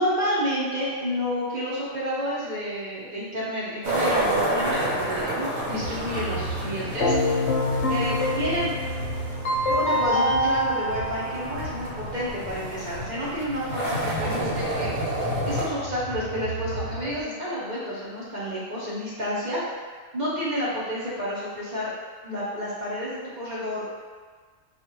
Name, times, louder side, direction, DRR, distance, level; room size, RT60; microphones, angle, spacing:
voice 1, 0.0-7.1 7.9-8.7 9.7-19.6 20.1-21.9 22.2-23.9, equal, 40° right, -8 dB, 0.8 m, -30 dB
sound 1, 3.8-15.6, right 1 dB, 85° right, 1.5 m, -30 dB
sound 2, 5.7-17.2, right 1 dB, 65° right, 1.3 m, -37 dB
Keyboard (musical), 7.0-12.0, left 1 dB, 60° left, 0.8 m, -25 dB
4.3 x 2.4 x 3.0 m, 1.5 s
omnidirectional pair, 1.5 m